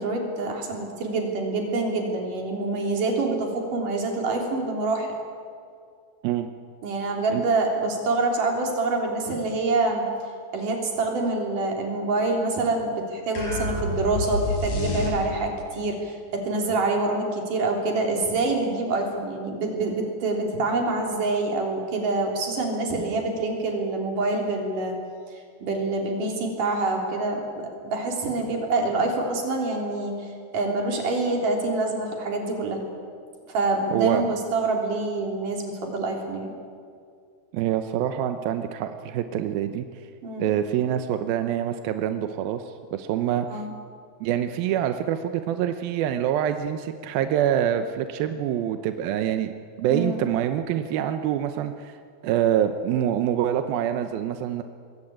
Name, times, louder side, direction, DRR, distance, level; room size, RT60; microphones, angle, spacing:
voice 1, 0.0-5.1 6.8-10.1 10.5-25.0 25.6-30.3 30.5-32.8 33.5-36.5 40.2-40.5 43.4-43.7 49.9-50.2, right 3 dB, 50° right, 1 dB, 4.8 m, -26 dB
sound 1, 13.4-15.6, left 1 dB, 45° left, 5.6 m, -28 dB
voice 2, 33.9-34.2 37.5-39.9 40.4-42.6 42.9-43.6 44.2-52.0 52.2-54.6, right 10 dB, 75° right, 8 dB, 2.3 m, -25 dB
24.5 x 21.5 x 8.7 m, 2.2 s
omnidirectional pair, 5.1 m